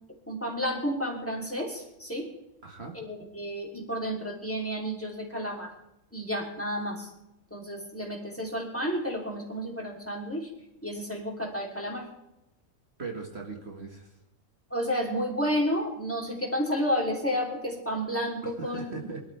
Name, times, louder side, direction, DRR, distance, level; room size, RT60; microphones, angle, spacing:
voice 1, 0.3-2.3 2.9-5.7 6.1-7.1 7.5-10.5 10.8-12.1 14.7-18.9, equal, 10° left, 0 dB, 3.2 m, -31 dB
voice 2, 2.6-2.9 13.0-14.1 18.4-19.2, right 4 dB, 50° right, 1 dB, 2.0 m, -39 dB
23.5 x 12.5 x 3.4 m, 0.92 s
omnidirectional pair, 1.5 m